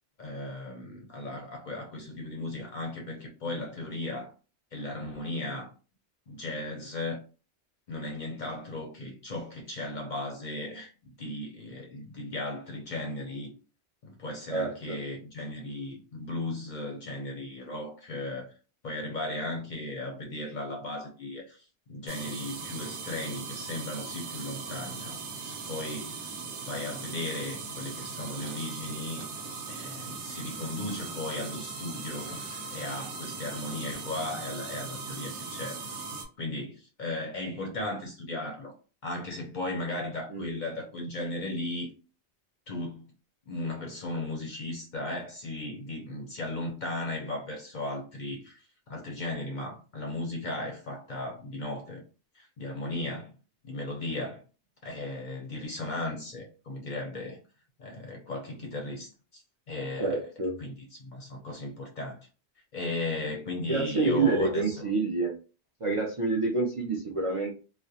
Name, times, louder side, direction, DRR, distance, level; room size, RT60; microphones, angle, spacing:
voice 1, 0.2-4.3 4.7-5.7 6.3-7.2 7.9-13.5 14.0-18.5 18.8-26.3 26.6-29.3 29.7-36.0 36.4-38.7 39.0-41.9 42.7-43.1 43.5-52.0 52.3-53.3 53.6-54.4 54.8-57.4 57.8-60.2 60.6-62.2 62.7-64.8, left 2 dB, 55° left, 0.6 m, -36 dB
voice 2, 14.5-15.0 40.3-40.6 60.0-60.6 63.7-65.3 65.8-67.5, right 3 dB, 50° right, 0.4 m, -27 dB
sound 1, 22.1-36.2, right 4 dB, 80° right, 0.9 m, -39 dB
2.4 x 2.1 x 2.6 m
omnidirectional pair, 1.2 m